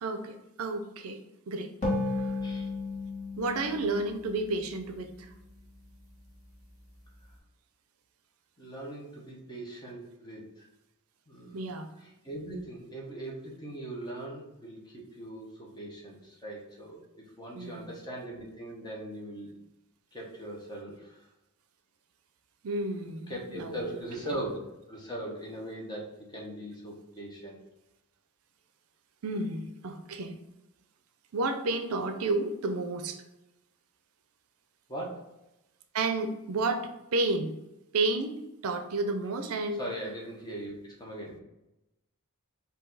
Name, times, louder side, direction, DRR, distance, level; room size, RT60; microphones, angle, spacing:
voice 1, 0.0-1.2 1.5-1.7 2.2-2.3 3.4-5.3 11.5-11.9 17.5-17.9 22.6-24.0 24.3-24.4 29.2-30.4 31.3-33.2 35.9-37.5 37.9-39.8, right 2 dB, 70° right, 7 dB, 0.5 m, -31 dB
sound 1, 1.8-5.3, left 2 dB, 35° left, 1.4 m, -34 dB
voice 2, 8.6-10.7 11.3-11.6 12.0-19.6 20.1-21.3 23.3-24.6 24.9-27.5 34.9-35.2 39.8-41.4, right 1 dB, 20° left, -2 dB, 1.0 m, -40 dB
4.9 x 2.7 x 3.9 m, 0.92 s
head